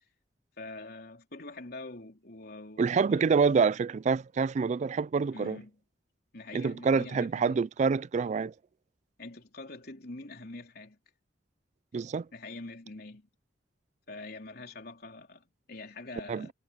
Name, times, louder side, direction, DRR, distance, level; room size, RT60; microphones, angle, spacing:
voice 1, 0.6-3.4 5.3-5.8 6.3-7.6 9.2-11.0 12.3-13.3 14.1-16.5, left 2 dB, 60° left, 3.8 m, -45 dB
voice 2, 2.8-5.6 6.5-8.5 11.9-12.3 16.3-16.5, right 5 dB, 40° right, 0.3 m, -27 dB
head